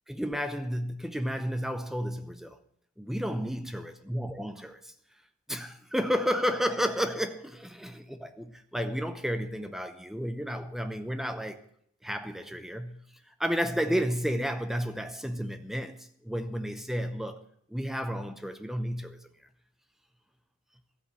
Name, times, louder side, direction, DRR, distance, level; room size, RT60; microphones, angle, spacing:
voice 1, 0.1-2.6 3.0-4.9 5.5-11.6 12.0-13.0 13.4-17.4 17.7-19.2, equal, ahead, 0.6 m, -32 dB
13.0 x 8.4 x 7.7 m
head